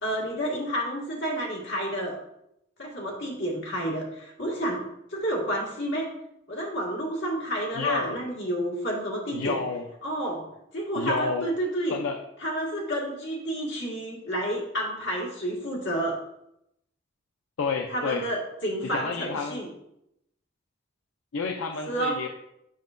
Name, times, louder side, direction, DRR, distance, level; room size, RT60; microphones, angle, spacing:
voice 1, 0.0-2.2 2.8-4.8 5.1-6.1 6.5-9.6 10.0-10.5 10.7-12.0 12.4-16.2 17.9-19.7 21.9-22.2, right 1 dB, 60° left, -3 dB, 1.8 m, -30 dB
voice 2, 7.8-8.1 9.3-9.8 10.9-11.5 11.9-12.2 17.6-18.2 18.8-19.6 21.3-22.3, left 4 dB, 85° left, 3 dB, 0.5 m, -30 dB
7.5 x 5.6 x 2.5 m, 0.80 s
head